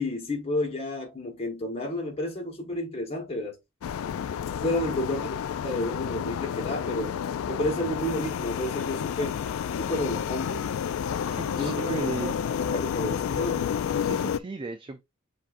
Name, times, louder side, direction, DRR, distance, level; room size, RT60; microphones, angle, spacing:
voice 1, 0.0-3.6 4.5-5.3 5.6-7.2 7.5-9.4 9.8-10.6 11.5-12.3 12.7-13.8, left 1 dB, 30° left, 1.2 m, -31 dB
sound 1, 3.8-14.4, left 8 dB, 90° left, 0.3 m, -30 dB
voice 2, 4.9-5.3 11.3-12.4 14.0-15.0, right 2 dB, 25° right, 0.4 m, -36 dB
7.4 x 2.7 x 2.5 m
head